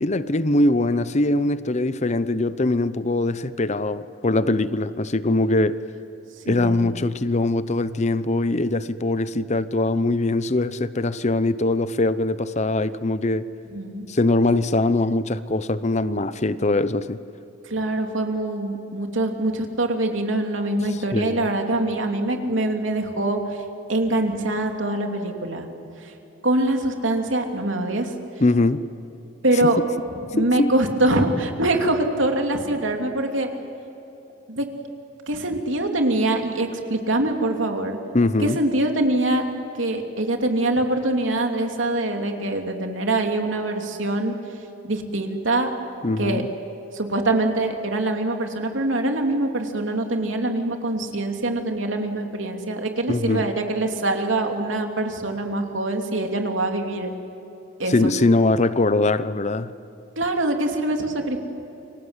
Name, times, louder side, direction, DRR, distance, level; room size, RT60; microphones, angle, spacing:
voice 1, 0.0-5.8 6.5-13.4 14.1-17.2 21.1-21.4 28.4-28.8 29.6-29.7 30.4-30.7 38.1-38.6 46.0-46.5 53.1-53.4 57.9-59.7, left 2 dB, 35° left, 0.8 m, -22 dB
voice 2, 6.5-6.9 13.7-14.1 17.6-23.4 23.9-25.7 26.0-26.1 26.4-28.1 29.4-29.8 30.1-33.5 34.5-34.7 35.3-38.0 38.4-39.4 39.8-44.4 44.8-45.7 46.2-46.4 46.9-57.1 57.8-58.1 60.2-61.4, right 2 dB, 90° right, 3.0 m, -24 dB
29.5 x 24.5 x 8.2 m
head